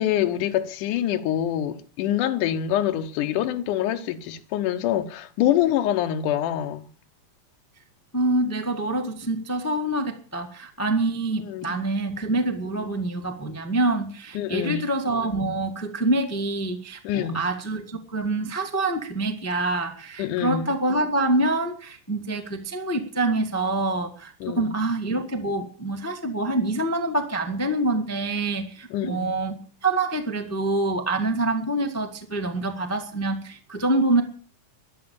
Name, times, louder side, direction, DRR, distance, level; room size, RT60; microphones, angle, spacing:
voice 1, 0.0-6.9 11.5-11.8 12.7-12.9 14.3-14.9 17.0-17.5 20.2-20.8 24.4-24.8 28.9-29.3, left 11 dB, 85° left, 2.5 m, -25 dB
voice 2, 8.1-29.6 29.8-34.2, right 2 dB, 10° left, 0.8 m, -26 dB
13.5 x 11.0 x 8.8 m
omnidirectional pair, 3.6 m